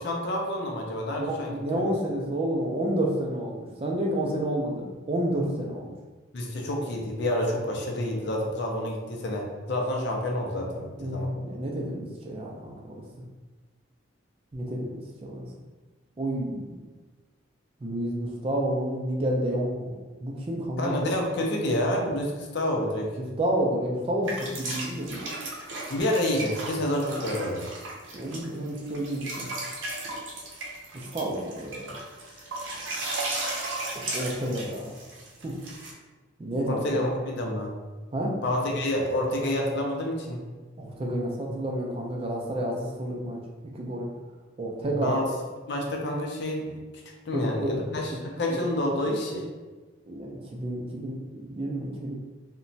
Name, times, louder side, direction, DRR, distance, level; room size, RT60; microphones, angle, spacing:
voice 1, 0.0-1.8 6.3-11.3 20.8-23.1 25.9-27.6 36.7-37.7 38.4-40.4 44.8-45.3 45.7-46.8 47.3-49.5, left 1 dB, 60° left, 0 dB, 0.5 m, -28 dB
voice 2, 1.2-6.0 11.0-13.0 14.5-15.5 16.2-16.8 17.8-21.0 23.4-25.2 28.1-29.5 30.9-31.9 34.0-34.9 35.4-35.5 36.4-37.0 38.1-38.4 40.8-43.4 43.7-44.1 44.6-45.2 47.3-48.2 50.1-52.2, right 1 dB, 30° right, -1 dB, 0.3 m, -30 dB
sound 1, 24.2-35.9, right 2 dB, 75° right, 0.6 m, -35 dB
2.9 x 2.1 x 2.6 m, 1.3 s
head